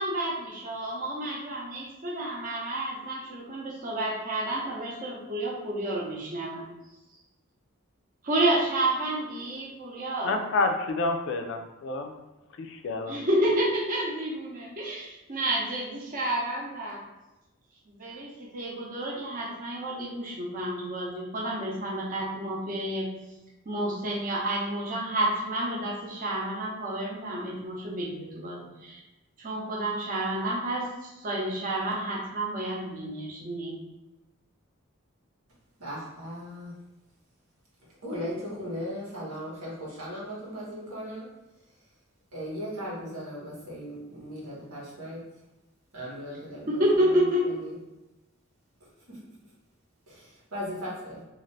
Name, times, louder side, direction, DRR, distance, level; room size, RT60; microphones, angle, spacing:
voice 1, 0.0-6.7 8.2-10.4 13.1-17.0 17.9-23.1 23.6-29.0 29.4-33.8 46.7-47.6, right 1 dB, 40° right, 0.6 m, -30 dB
voice 2, 10.2-12.1 12.6-13.2, left 3 dB, 55° left, 0.3 m, -29 dB
voice 3, 35.8-36.7 38.0-41.2 42.3-45.2 45.9-46.8 47.4-47.7 49.1-49.2 50.1-51.2, equal, 90° right, 1.2 m, -37 dB
2.5 x 2.4 x 3.2 m
head